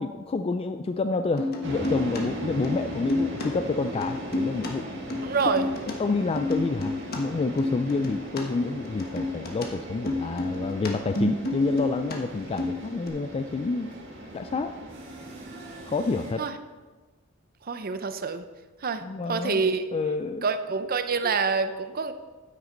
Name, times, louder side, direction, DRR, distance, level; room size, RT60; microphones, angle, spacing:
voice 1, 0.0-4.9 6.0-13.9 14.3-14.8 15.9-16.4 19.0-19.6 19.9-20.4 21.2-21.3, left 3 dB, 30° left, 7 dB, 0.3 m, -28 dB
sound 1, 1.4-2.2 2.5-3.5 3.7-5.9 6.2-8.4 8.7-12.2 12.4-13.1, left 2 dB, 50° left, 1.3 m, -30 dB
sound 2, 1.6-16.3, right 1 dB, 65° right, 1.6 m, -39 dB
voice 2, 5.2-5.7 16.4-16.5 17.6-18.5 18.8-19.0 19.3-19.8 20.4-22.1, right 4 dB, 45° right, 9 dB, 0.6 m, -26 dB
9.4 x 9.3 x 3.9 m, 1.3 s
head